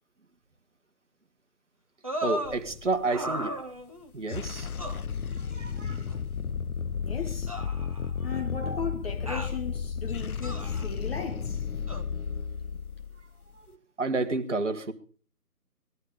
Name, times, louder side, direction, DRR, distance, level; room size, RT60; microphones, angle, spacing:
sound 1, 2.0-2.6 3.1-4.1 4.8-5.0 6.1-6.2 7.5-8.4 9.3-9.6 10.4-10.9 11.9-12.0, equal, 25° right, 0.8 m, -35 dB
voice 1, 2.2-3.5 4.1-4.7 5.5-6.0 8.6-8.8 14.0-14.9, right 3 dB, 50° right, 1.7 m, -30 dB
sound 2, 2.4-3.1 4.1-13.5, left 6 dB, 65° left, 0.7 m, -33 dB
voice 2, 7.0-7.6 8.2-11.6, left 5 dB, 40° left, 1.9 m, -37 dB
20.0 x 12.0 x 5.2 m
figure-of-eight pair, 160°, 47 cm